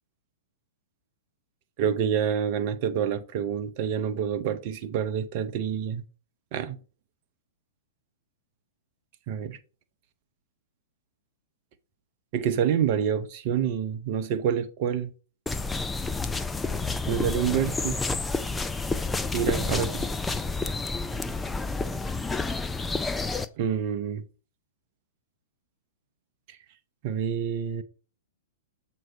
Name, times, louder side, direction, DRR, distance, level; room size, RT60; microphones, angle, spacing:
voice 1, 1.8-6.0 6.5-6.8 9.3-9.6 12.3-15.1 17.1-18.0 19.3-20.0 23.6-24.2 27.0-27.8, right 8 dB, 45° right, 0.7 m, -27 dB
sound 1, 15.5-23.5, left 3 dB, 10° left, 0.5 m, -29 dB
7.6 x 3.1 x 5.7 m
hypercardioid pair, 110°, 0 cm